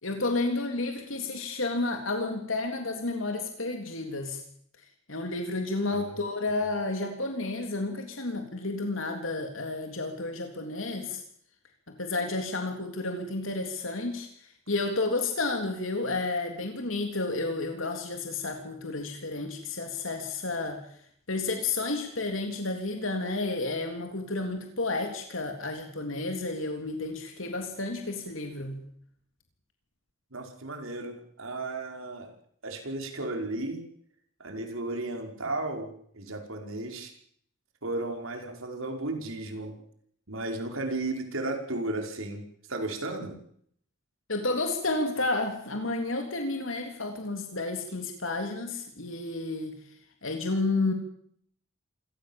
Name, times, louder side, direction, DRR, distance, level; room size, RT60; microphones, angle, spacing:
voice 1, 0.0-4.4 5.1-11.2 11.9-14.3 14.7-20.8 21.3-28.8 44.3-49.8 50.2-50.9, left 2 dB, 70° left, 4 dB, 3.5 m, -31 dB
voice 2, 5.9-6.2 30.3-32.3 32.6-33.9 34.4-37.1 37.8-39.8 40.3-43.4, right 2 dB, 80° right, 3 dB, 5.3 m, -34 dB
27.0 x 17.0 x 7.4 m, 0.65 s
head